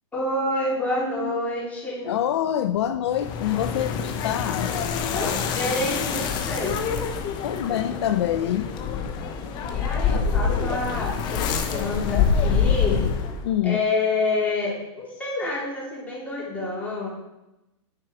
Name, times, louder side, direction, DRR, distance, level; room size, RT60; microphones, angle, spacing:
voice 1, 0.1-2.1 5.1-6.8 9.7-13.1 13.6-17.1, left 2 dB, 10° left, -6 dB, 3.5 m, -28 dB
voice 2, 2.0-4.7 7.4-8.7 10.1-10.2 13.4-13.8, left 11 dB, 60° left, 9 dB, 0.6 m, -25 dB
sound 1, 3.1-13.5, left 6 dB, 30° left, 1.0 m, -26 dB
10.0 x 7.1 x 4.8 m, 0.94 s
hypercardioid pair, 150°, 16 cm